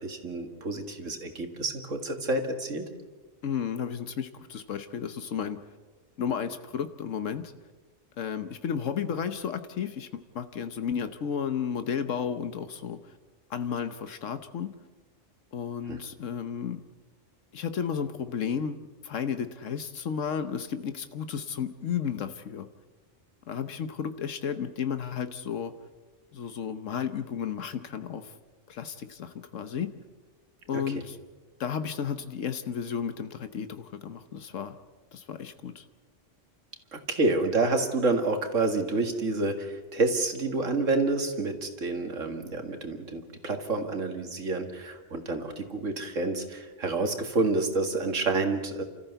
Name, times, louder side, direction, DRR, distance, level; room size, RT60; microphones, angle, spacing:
voice 1, 0.0-2.9 15.9-16.0 30.7-30.8 36.9-48.8, right 3 dB, 80° right, 6 dB, 2.3 m, -28 dB
voice 2, 3.4-5.6 6.2-7.5 8.2-13.1 13.5-14.7 15.5-16.8 17.5-18.8 19.0-22.7 23.5-25.7 26.3-28.3 28.7-29.9 30.7-31.2 31.6-34.8 35.1-35.8, left 7 dB, 80° left, 10 dB, 1.3 m, -33 dB
28.5 x 14.0 x 8.1 m, 1.3 s
omnidirectional pair, 1.3 m